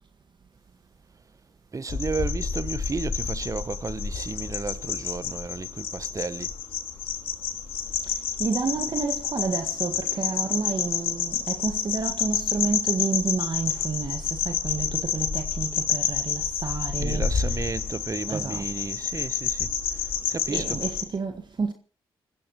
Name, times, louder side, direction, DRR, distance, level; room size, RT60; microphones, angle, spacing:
voice 1, 1.7-6.5 17.0-19.7 20.0-20.9, right 4 dB, 35° right, 1.0 m, -33 dB
sound 1, 1.9-21.0, left 6 dB, 75° left, 3.0 m, -29 dB
voice 2, 8.4-17.3 18.3-18.7 20.5-21.7, right 4 dB, 50° right, 1.8 m, -30 dB
28.0 x 15.0 x 3.1 m
supercardioid pair, 50°, 10 cm